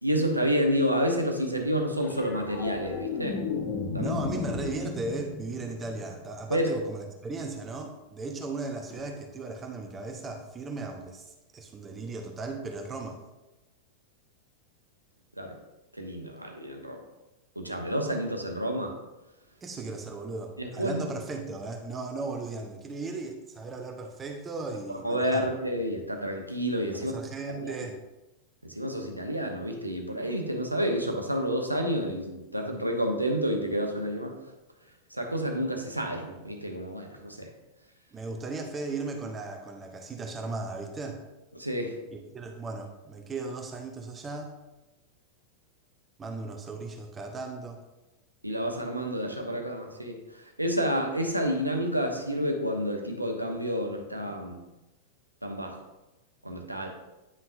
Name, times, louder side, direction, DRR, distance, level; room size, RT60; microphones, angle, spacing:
voice 1, 0.0-3.4 3.9-4.2 6.5-6.7 15.4-15.6 15.9-17.0 17.6-18.9 20.6-21.0 24.9-27.1 27.6-27.7 28.6-34.4 35.1-37.5 41.5-41.9 48.4-54.6 55.4-55.8 56.4-56.9, equal, 85° right, 3 dB, 1.0 m, -29 dB
sound 1, 2.0-6.5 8.9-9.1, left 5 dB, 40° left, 1.0 m, -34 dB
voice 2, 4.0-13.2 19.6-25.5 26.9-28.0 38.1-41.2 42.1-44.5 46.2-47.8, right 3 dB, 20° right, 3 dB, 0.8 m, -36 dB
9.6 x 5.6 x 2.6 m, 1.0 s
figure-of-eight pair, 90°, 0 cm